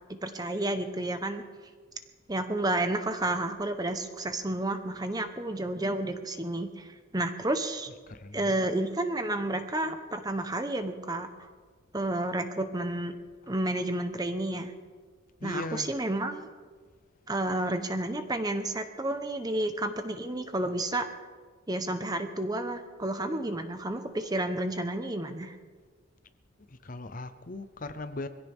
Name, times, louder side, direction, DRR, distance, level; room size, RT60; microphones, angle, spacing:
voice 1, 0.1-1.4 2.3-7.9 8.3-11.3 11.9-13.2 13.5-14.7 15.4-16.5 17.3-21.1 21.7-25.5, right 1 dB, 20° right, 0.9 m, -31 dB
voice 2, 7.9-8.7 15.4-15.9 26.7-28.3, left 2 dB, 40° left, 0.7 m, -39 dB
22.5 x 16.0 x 3.6 m
head